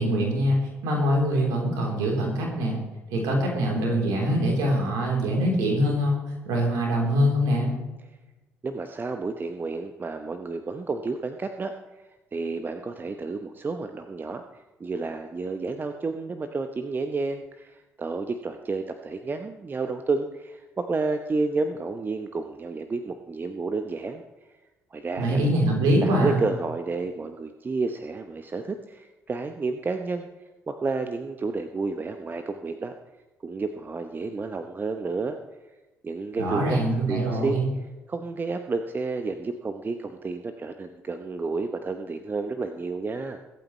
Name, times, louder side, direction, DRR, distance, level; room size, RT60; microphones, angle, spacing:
voice 1, 0.0-2.8 3.1-6.2 6.5-7.7 25.2-26.4 36.4-37.7, equal, 60° right, -1 dB, 3.5 m, -23 dB
voice 2, 8.6-14.4 14.8-24.2 24.9-25.4 26.0-30.3 30.7-32.9 33.4-35.4 36.0-36.8 37.1-37.6 38.1-43.4, right 3 dB, 30° right, 8 dB, 0.9 m, -31 dB
22.5 x 8.9 x 3.2 m, 1.1 s
figure-of-eight pair, 45°, 7 cm